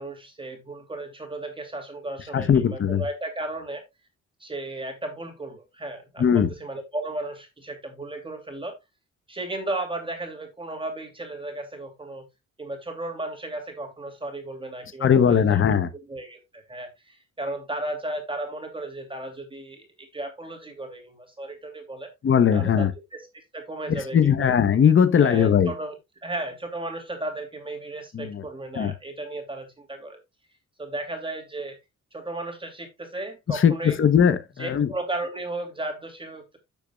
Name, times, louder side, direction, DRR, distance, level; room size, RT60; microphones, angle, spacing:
voice 1, 0.0-3.9 4.4-8.8 9.3-12.2 12.6-15.6 16.0-22.1 22.5-23.3 23.5-24.5 25.2-26.0 26.2-30.2 30.8-31.8 32.1-34.0 34.6-36.6, right 2 dB, 15° right, 2.7 m, -35 dB
voice 2, 2.3-3.0 6.2-6.5 15.0-15.9 22.2-22.9 24.1-25.7 28.1-28.5 28.8-28.9 33.5-34.9, left 8 dB, 45° left, 1.1 m, -19 dB
11.5 x 7.1 x 2.4 m
cardioid pair, 135°, 29 cm